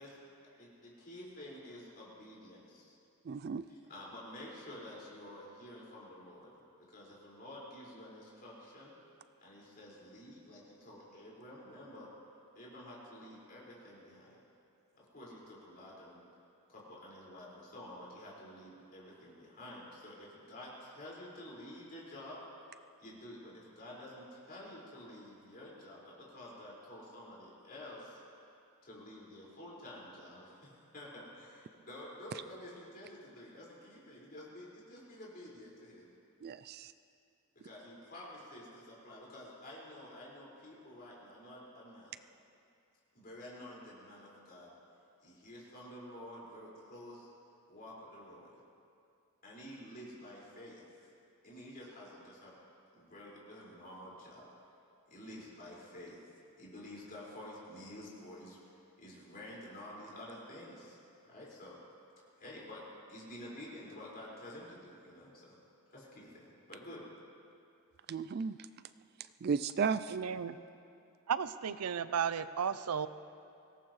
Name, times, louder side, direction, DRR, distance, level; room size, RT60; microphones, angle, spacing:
voice 1, 0.4-2.9 3.6-8.9 9.4-12.1 12.5-14.4 15.0-16.2 16.7-22.4 23.0-28.2 28.8-36.1 37.6-42.2 43.1-44.7 45.2-47.3 47.7-48.6 49.4-50.8 51.4-52.6 52.9-54.5 55.1-56.2 56.6-61.0 61.2-61.8 62.4-62.8 63.1-65.6 65.9-67.0, left 1 dB, 40° left, -6 dB, 5.1 m, -50 dB
voice 2, 3.3-3.6 36.4-36.9 68.1-68.6 69.4-70.1, right 6 dB, 45° right, 13 dB, 0.3 m, -34 dB
voice 3, 70.1-70.6 71.3-73.1, right 7 dB, 90° right, 13 dB, 0.6 m, -34 dB
24.5 x 17.5 x 3.2 m, 2.5 s
head